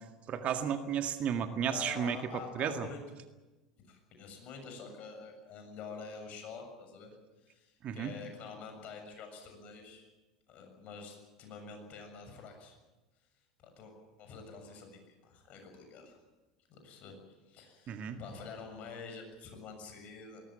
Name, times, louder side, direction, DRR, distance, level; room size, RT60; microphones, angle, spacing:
voice 1, 0.3-2.2 2.6-2.9 7.8-8.1 17.9-18.2, right 8 dB, 40° right, 7 dB, 1.9 m, -33 dB
voice 2, 1.7-3.0 3.8-7.1 7.4-10.1 10.5-12.8 13.6-16.2 16.7-17.2 17.5-20.4, left 5 dB, 45° left, 4 dB, 7.1 m, -47 dB
20.5 x 19.0 x 9.2 m, 1.1 s
figure-of-eight pair, 75°, 3 cm